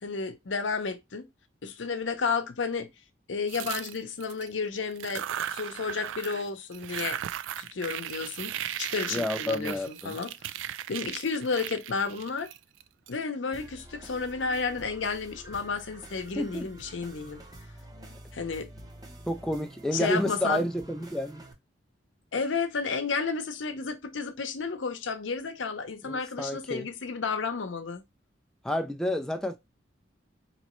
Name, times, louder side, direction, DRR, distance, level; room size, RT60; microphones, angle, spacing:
voice 1, 0.0-1.3 1.6-2.9 3.3-5.2 5.5-7.2 7.6-10.3 10.9-12.5 13.1-17.4 18.3-18.7 19.9-20.6 22.3-28.0, left 4 dB, 80° left, 0.7 m, -32 dB
sound 1, 3.5-4.5 4.9-6.5 6.7-13.1, right 11 dB, 85° right, 0.3 m, -37 dB
voice 2, 9.1-10.1 16.4-16.7 19.3-21.4 26.1-26.9 28.6-29.6, left 1 dB, 5° left, 0.3 m, -30 dB
sound 2, 13.5-21.5, right 1 dB, 20° right, 0.7 m, -48 dB
4.1 x 3.0 x 3.0 m
head